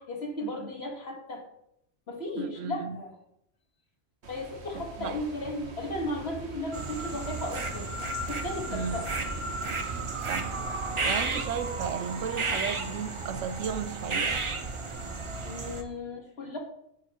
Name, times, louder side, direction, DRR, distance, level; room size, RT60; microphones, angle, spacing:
voice 1, 0.0-1.4 2.1-3.2 4.3-7.9 8.3-9.1 15.4-16.6, left 1 dB, 55° left, 2.0 m, -35 dB
voice 2, 2.4-3.0 4.7-5.2 8.7-9.0 10.3-10.6 11.0-14.5, right 7 dB, 85° right, 1.0 m, -34 dB
sound 1, 4.2-15.8, right 3 dB, 65° right, 1.4 m, -43 dB
sound 2, 6.7-15.8, right 3 dB, 30° right, 0.7 m, -33 dB
9.8 x 8.9 x 3.1 m
omnidirectional pair, 1.3 m